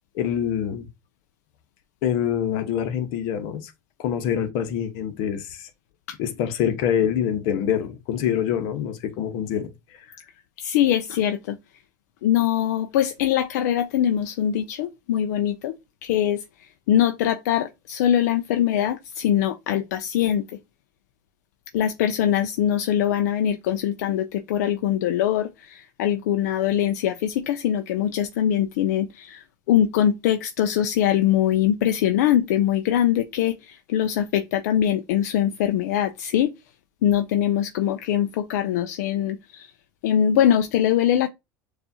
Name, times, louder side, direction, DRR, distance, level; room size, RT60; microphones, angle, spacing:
voice 1, 0.1-0.9 2.0-3.7 4.0-5.7 6.2-9.7 10.1-10.2, left 9 dB, 70° left, 0.9 m, -25 dB
voice 2, 10.6-11.6 12.2-15.7 16.0-20.4 21.7-36.5 37.0-39.7 40.0-41.3, left 10 dB, 85° left, 0.4 m, -22 dB
6.7 x 2.4 x 2.7 m
supercardioid pair, 115°, 9 cm